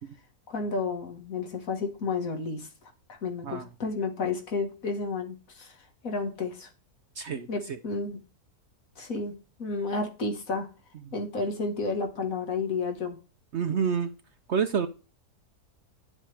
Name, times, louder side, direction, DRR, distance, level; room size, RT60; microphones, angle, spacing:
voice 1, 0.5-2.7 3.2-5.7 6.0-6.7 7.5-8.2 9.0-10.7 11.1-13.2, left 4 dB, 60° left, 2.0 m, -31 dB
voice 2, 7.1-7.8 10.9-11.1 13.5-14.1 14.5-14.9, right 6 dB, 60° right, 0.8 m, -29 dB
10.5 x 7.4 x 3.4 m
omnidirectional pair, 1.6 m